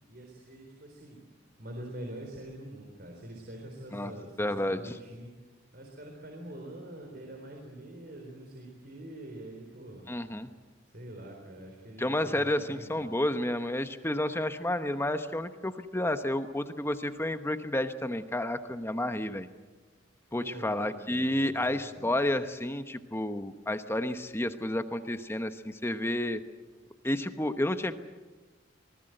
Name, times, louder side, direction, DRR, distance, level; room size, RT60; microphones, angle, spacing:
voice 1, 0.1-1.2 1.6-5.3 5.7-10.1 10.9-13.1 20.3-22.1, right 1 dB, 55° right, 1 dB, 4.0 m, -45 dB
voice 2, 4.4-4.9 10.1-10.5 12.0-19.5 20.3-26.4 27.0-27.9, left 1 dB, 15° left, 9 dB, 1.0 m, -31 dB
26.5 x 19.5 x 7.9 m, 1.3 s
head